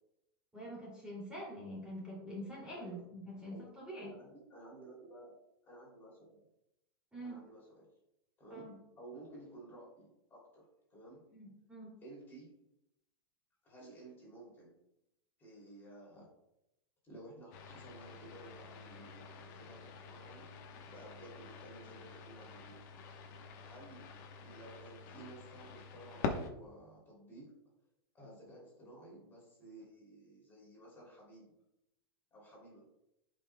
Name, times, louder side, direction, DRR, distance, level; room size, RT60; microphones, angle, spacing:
voice 1, 0.5-4.1 7.1-7.4 8.5-8.7 11.3-12.0, equal, 5° right, -5 dB, 2.5 m, -45 dB
voice 2, 4.0-5.3 5.7-6.4 7.2-7.9 8.4-8.7 9.0-10.6 10.9-11.2 12.0-12.5 13.6-14.8 15.4-16.3 17.0-20.5 20.8-22.8 23.6-27.5 28.1-31.5 32.3-32.8, right 2 dB, 15° left, -3 dB, 2.8 m, -54 dB
sound 1, 17.5-26.5, left 5 dB, 45° left, 1.1 m, -46 dB
14.5 x 5.3 x 2.2 m, 0.87 s
supercardioid pair, 160°, 13 cm